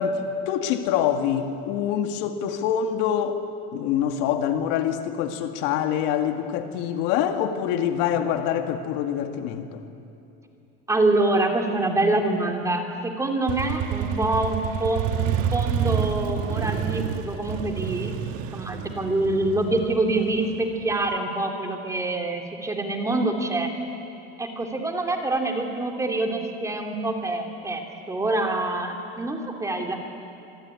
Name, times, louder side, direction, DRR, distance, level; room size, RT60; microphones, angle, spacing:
voice 1, 0.0-3.4 3.7-9.8, left 9 dB, 65° left, 6 dB, 2.1 m, -25 dB
voice 2, 10.9-23.7 24.4-30.0, right 2 dB, 10° right, 3 dB, 2.6 m, -26 dB
Motorcycle, 13.5-21.1, right 9 dB, 45° right, 1.5 m, -28 dB
26.5 x 23.0 x 9.6 m, 2.7 s
cardioid pair, 155°, 31 cm